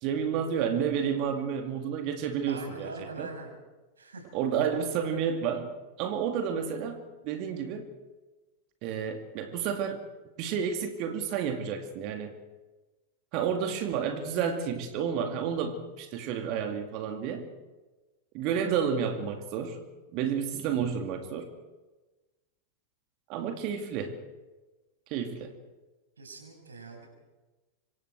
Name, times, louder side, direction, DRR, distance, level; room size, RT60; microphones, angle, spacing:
voice 1, 0.0-3.3 4.3-5.7 6.0-7.9 8.8-10.0 10.4-12.3 13.3-17.5 18.3-19.8 20.1-21.5 23.3-24.2 25.1-25.5, right 7 dB, 40° right, 6 dB, 2.3 m, -31 dB
voice 2, 2.5-3.5 4.0-4.3 26.2-27.1, right 3 dB, 70° right, 3 dB, 6.0 m, -42 dB
25.5 x 25.0 x 4.6 m, 1.2 s
figure-of-eight pair, 90°, 0 cm